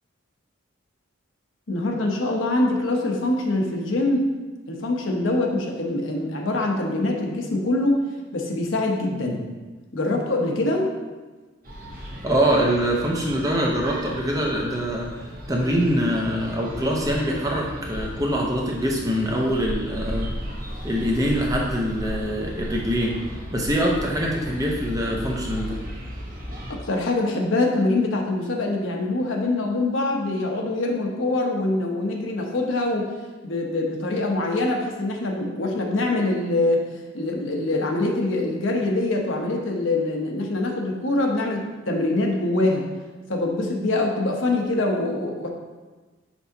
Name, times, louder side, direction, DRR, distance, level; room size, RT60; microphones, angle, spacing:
voice 1, 1.7-4.3 4.7-9.4 9.9-10.9 26.7-33.1 33.4-36.8 37.1-42.9 43.3-45.5, left 2 dB, 75° left, 0 dB, 0.9 m, -24 dB
sound 1, 11.6-26.8, equal, 40° right, 0.9 m, -35 dB
voice 2, 12.2-15.1 15.5-20.3 20.8-23.2 23.5-25.8, equal, 15° right, -1 dB, 0.7 m, -24 dB
6.0 x 5.6 x 2.8 m, 1.3 s
head